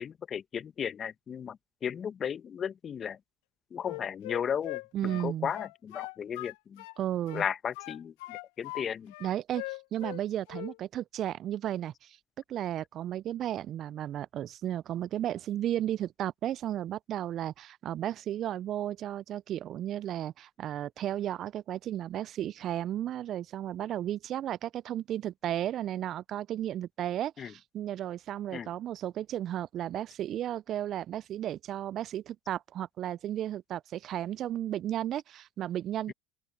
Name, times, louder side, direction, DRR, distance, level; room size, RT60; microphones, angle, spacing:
voice 1, 0.0-3.2 3.7-6.8 7.3-9.1 27.4-27.6 28.5-28.7 36.1-36.2, left 8 dB, 35° left, 1.1 m, -35 dB
Wind instrument woodwind instrument, 3.8-7.0 7.3-8.9 9.1-10.2 10.5-10.8, left 23 dB, 70° left, 1.5 m, -41 dB
voice 2, 4.9-5.5 7.0-7.4 9.2-12.2 12.5-36.1, right 11 dB, 50° right, 0.4 m, -34 dB
open air
hypercardioid pair, 80°, 0 cm